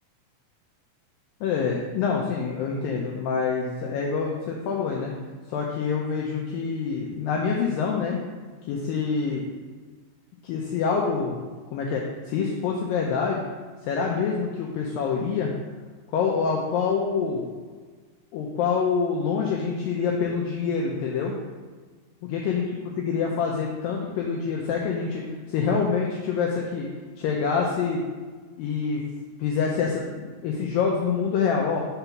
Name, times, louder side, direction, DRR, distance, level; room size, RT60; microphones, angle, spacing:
voice 1, 1.4-5.1 5.5-8.2 8.7-9.4 10.4-11.4 11.7-13.4 13.8-15.5 16.1-17.5 18.3-21.3 22.3-25.2 25.5-26.9 27.2-28.0 28.6-29.0 29.4-31.8, left 5 dB, 85° left, -1 dB, 2.0 m, -26 dB
5.7 x 4.0 x 5.9 m, 1.4 s
omnidirectional pair, 4.7 m